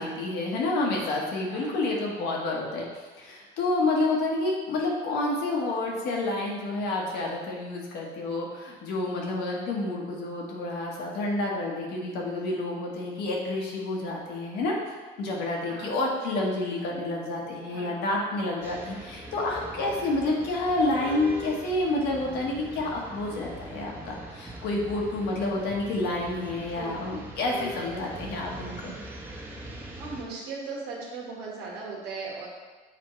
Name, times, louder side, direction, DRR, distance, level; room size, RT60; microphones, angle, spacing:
voice 1, 0.0-14.7 15.2-28.9, left 2 dB, 80° left, -2 dB, 1.4 m, -29 dB
voice 2, 1.5-1.8 15.7-15.9 17.7-17.9 26.7-27.0 30.0-32.5, right 4 dB, 90° right, -3 dB, 1.6 m, -38 dB
sound 1, 18.6-30.2, right 1 dB, 15° right, 1.0 m, -42 dB
7.2 x 4.3 x 3.2 m, 1.3 s
cardioid pair, 110°, 17 cm